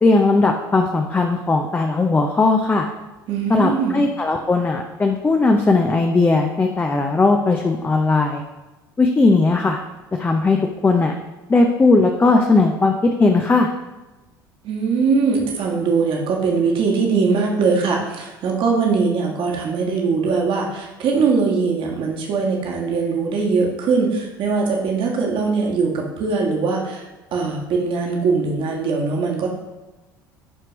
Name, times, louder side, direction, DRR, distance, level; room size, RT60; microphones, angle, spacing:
voice 1, 0.0-2.9 3.5-8.4 9.0-9.8 10.1-10.6 10.8-11.1 11.5-12.9 13.2-13.7, left 3 dB, 15° left, 3 dB, 0.6 m, -17 dB
voice 2, 3.3-4.1 14.6-29.5, right 4 dB, 45° right, 0 dB, 1.6 m, -21 dB
11.0 x 4.5 x 3.0 m, 1.1 s
figure-of-eight pair, 65°, 12 cm